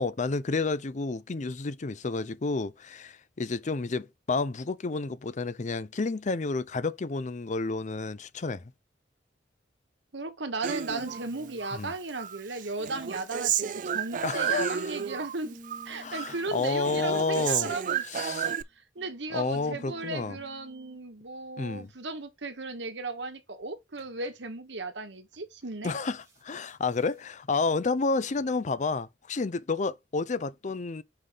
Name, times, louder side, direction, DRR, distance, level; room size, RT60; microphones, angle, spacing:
voice 1, 0.0-8.6 11.7-11.9 14.2-14.8 16.0-17.7 18.1-18.5 19.3-20.4 21.6-21.9 25.8-31.0, left 3 dB, 40° left, 0.5 m, -30 dB
voice 2, 10.1-15.6 15.8-18.6 18.9-25.9, right 3 dB, 75° right, 1.3 m, -36 dB
Human voice, 10.6-11.8 12.2-15.4 15.6-16.4 16.6-18.6, right 8 dB, 45° right, 0.4 m, -32 dB
Tuning and touching an acoustic guitar, 15.4-18.3 19.0-21.0 23.9-24.2 25.3-25.6 26.1-27.2, equal, 15° right, 2.4 m, -54 dB
5.7 x 5.0 x 3.8 m
head